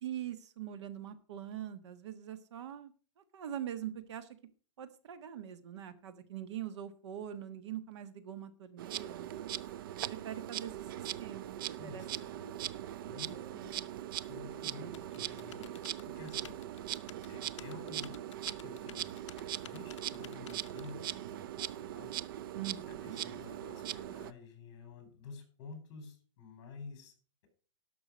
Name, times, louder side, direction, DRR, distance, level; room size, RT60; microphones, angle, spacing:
voice 1, 0.0-4.3 4.8-9.5 10.1-10.7 11.2-11.6 11.8-12.0 12.3-12.5 13.0-13.5 14.8-15.0 22.5-23.2, right 10 dB, 65° right, 12 dB, 1.4 m, -43 dB
Insect, 8.8-24.3, right 12 dB, 45° right, 0.4 m, -41 dB
voice 2, 11.8-12.4 13.1-13.9 14.3-16.6 17.3-19.2 19.6-22.1 22.9-27.1, left 4 dB, 40° left, 7 dB, 4.2 m, -51 dB
Typing, 14.9-20.9, left 11 dB, 70° left, 0.6 m, -54 dB
12.0 x 6.0 x 6.3 m, 0.39 s
hypercardioid pair, 160°, 16 cm